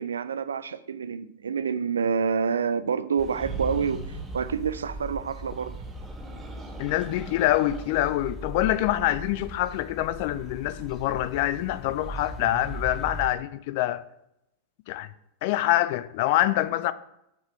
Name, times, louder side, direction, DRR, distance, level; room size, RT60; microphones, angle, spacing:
voice 1, 0.0-5.8, right 6 dB, 70° right, 0.3 m, -28 dB
sound 1, 3.2-13.3, right 1 dB, 10° left, 2.5 m, -40 dB
sound 2, 3.3-4.5 5.4-8.0, right 2 dB, 15° right, 1.0 m, -39 dB
voice 2, 6.8-14.1 14.9-15.1 15.4-16.9, left 14 dB, 50° left, 0.4 m, -25 dB
8.3 x 4.2 x 4.5 m
figure-of-eight pair, 90°, 0 cm